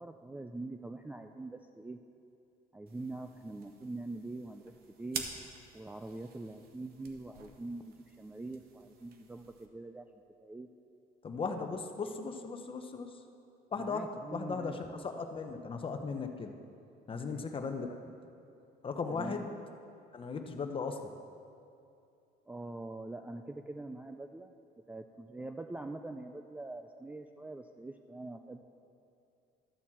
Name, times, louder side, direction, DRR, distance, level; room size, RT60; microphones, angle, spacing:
voice 1, 0.0-2.0 2.7-4.7 5.0-5.3 5.7-10.1 10.4-10.7 11.6-11.7 13.8-15.1 17.2-17.4 19.1-19.5 22.5-24.5 24.9-28.6, right 2 dB, 10° right, 5 dB, 0.3 m, -44 dB
sound 1, 2.9-9.7, right 6 dB, 65° right, 1.0 m, -48 dB
voice 2, 11.2-13.2 13.7-16.5 17.1-18.0 18.8-19.5 20.1-21.1, left 4 dB, 30° left, 6 dB, 0.8 m, -37 dB
12.5 x 4.3 x 7.3 m, 2.6 s
cardioid pair, 110°, 17 cm